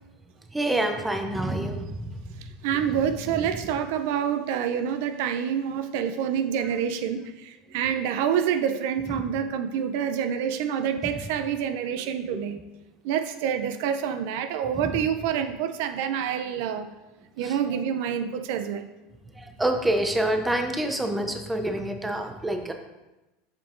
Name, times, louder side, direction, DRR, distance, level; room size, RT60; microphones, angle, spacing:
voice 1, 0.5-2.3 3.3-3.4 11.0-11.1 12.3-12.4 14.7-15.0 17.4-17.8 19.4-22.7, right 1 dB, 10° right, 5 dB, 0.7 m, -27 dB
voice 2, 2.6-12.6 13.0-16.9 17.4-18.9, right 8 dB, 70° right, 8 dB, 0.4 m, -27 dB
7.2 x 5.1 x 2.6 m, 1.0 s
supercardioid pair, 105°, 0 cm